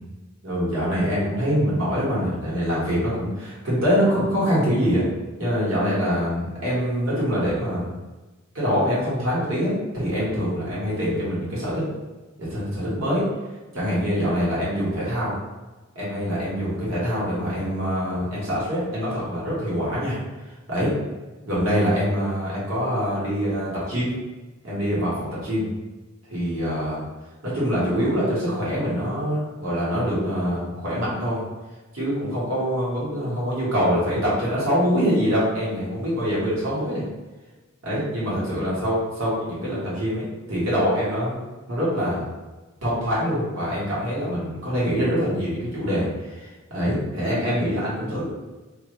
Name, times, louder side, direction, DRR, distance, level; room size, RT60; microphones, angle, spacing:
voice 1, 0.4-5.0 5.4-7.9 8.5-11.8 12.4-13.2 13.7-15.3 15.9-20.2 20.7-20.9 21.5-24.1 24.6-25.7 26.3-27.0 27.4-31.4 31.9-37.0 37.8-40.2 40.5-41.4 41.7-42.3 42.8-48.2, equal, 75° right, -7 dB, 1.4 m, -24 dB
2.6 x 2.5 x 3.0 m, 1.2 s
head